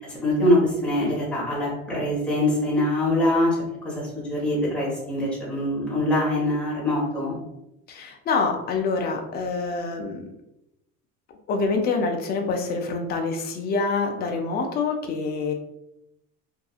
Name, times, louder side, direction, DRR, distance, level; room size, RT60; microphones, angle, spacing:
voice 1, 0.0-3.6 3.8-7.4, left 1 dB, 5° left, -7 dB, 1.0 m, -23 dB
voice 2, 7.9-10.2 11.5-15.5, left 4 dB, 35° left, 3 dB, 0.4 m, -26 dB
2.7 x 2.4 x 2.3 m, 0.86 s
cardioid pair, 155°, 30 cm